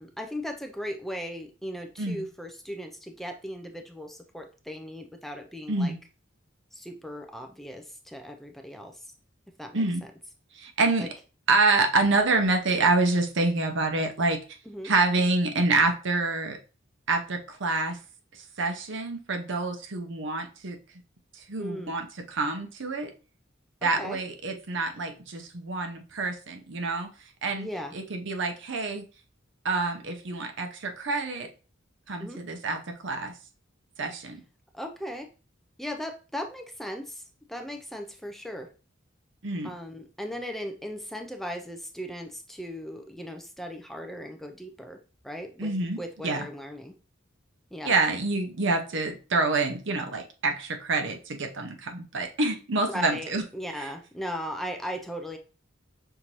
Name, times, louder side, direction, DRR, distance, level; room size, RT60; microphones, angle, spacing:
voice 1, 0.0-5.9 6.7-9.1 9.6-9.8 11.0-11.1 14.7-14.9 21.6-21.9 23.8-24.2 27.6-27.9 32.2-32.4 34.7-35.3 35.8-37.2 37.5-38.7 39.6-45.0 45.2-45.7 46.0-46.9 47.7-47.9 52.9-55.4, equal, ahead, 4 dB, 0.4 m, -37 dB
voice 2, 5.7-6.0 9.7-10.0 10.5-11.1 11.5-14.4 14.8-16.6 17.1-18.0 18.3-20.8 21.3-23.1 23.8-27.1 27.4-27.7 27.9-29.0 29.6-31.5 32.1-33.3 34.0-34.4 39.4-39.7 45.6-46.0 46.2-46.5 47.8-53.4 53.8-53.9, right 3 dB, 65° right, 4 dB, 0.8 m, -27 dB
5.7 x 2.6 x 3.0 m, 0.34 s
head